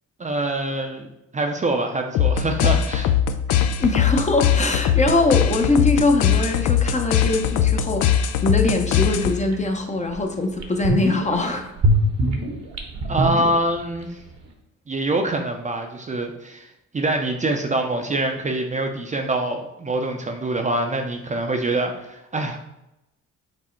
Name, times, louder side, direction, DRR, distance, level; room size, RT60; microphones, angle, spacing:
voice 1, 0.2-3.1 13.1-14.2 14.9-22.6, right 2 dB, 25° right, 3 dB, 0.5 m, -25 dB
sound 1, 2.1-9.6, left 9 dB, 80° left, 0.5 m, -21 dB
voice 2, 3.8-11.7, left 2 dB, 25° left, 4 dB, 0.6 m, -22 dB
sound 2, 9.5-9.6 10.1-10.2 10.6-11.4 11.8-14.0 14.3-14.4, right 1 dB, 60° right, 1.0 m, -22 dB
6.0 x 2.0 x 4.3 m, 0.88 s
cardioid pair, 90°, 30 cm